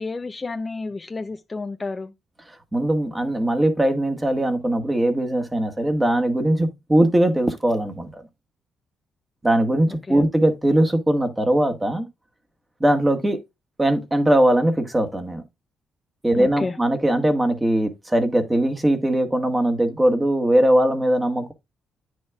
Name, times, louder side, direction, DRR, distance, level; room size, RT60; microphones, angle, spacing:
voice 1, 0.0-2.1 10.1-10.2 16.3-16.8, left 3 dB, 25° left, 0.6 m, -30 dB
voice 2, 2.7-8.1 9.4-12.1 12.8-13.4 13.8-15.4 16.2-21.5, right 1 dB, 15° right, 1.5 m, -20 dB
9.3 x 6.3 x 2.3 m
cardioid pair, 90°, 0 cm